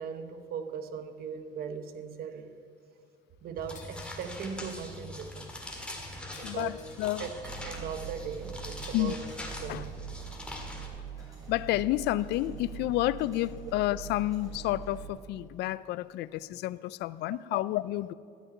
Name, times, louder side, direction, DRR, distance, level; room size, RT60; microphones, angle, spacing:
voice 1, 0.0-2.5 3.4-5.5 6.3-6.8 7.2-7.3 7.6-9.2 9.6-9.9, right 6 dB, 65° right, 1.1 m, -39 dB
sound 1, 3.6-10.9, left 1 dB, 5° left, 2.0 m, -42 dB
Shatter, 3.7-4.6 6.3-7.2 8.8-9.6, left 6 dB, 45° left, 1.5 m, -54 dB
voice 2, 6.4-7.3 8.9-9.2 9.7-9.9 11.5-18.1, left 16 dB, 80° left, 0.4 m, -30 dB
sound 2, 7.4-15.1, right 7 dB, 20° right, 3.4 m, -43 dB
13.5 x 5.9 x 9.2 m
cardioid pair, 110°, 17 cm